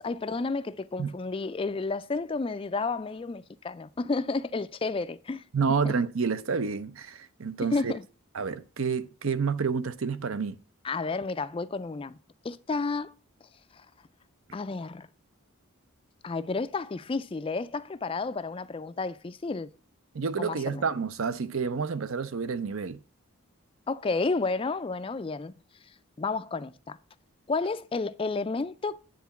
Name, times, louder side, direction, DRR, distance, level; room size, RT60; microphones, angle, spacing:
voice 1, 0.0-5.4 5.8-5.9 7.6-8.0 10.8-12.2 12.4-13.1 13.7-13.9 14.5-15.1 16.2-19.7 20.4-20.9 23.9-25.5 26.2-27.0 27.5-29.0, left 3 dB, 25° left, 0.3 m, -31 dB
voice 2, 5.5-7.9 8.3-10.6 20.1-23.0, right 5 dB, 70° right, 0.6 m, -29 dB
9.4 x 3.9 x 6.9 m
head